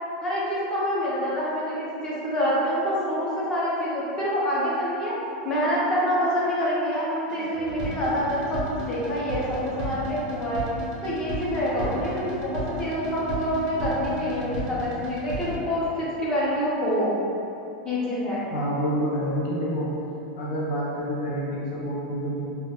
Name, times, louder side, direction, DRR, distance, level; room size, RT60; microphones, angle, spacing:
voice 1, 0.2-5.1 5.4-10.6 11.0-17.1 17.8-18.4, equal, 15° left, -7 dB, 0.5 m, -26 dB
sound 1, 7.3-15.6, equal, 80° right, 0.4 m, -33 dB
voice 2, 18.5-19.9 20.3-22.4, equal, 80° left, -6 dB, 0.4 m, -28 dB
2.1 x 2.1 x 2.8 m, 2.9 s
supercardioid pair, 160°, 4 cm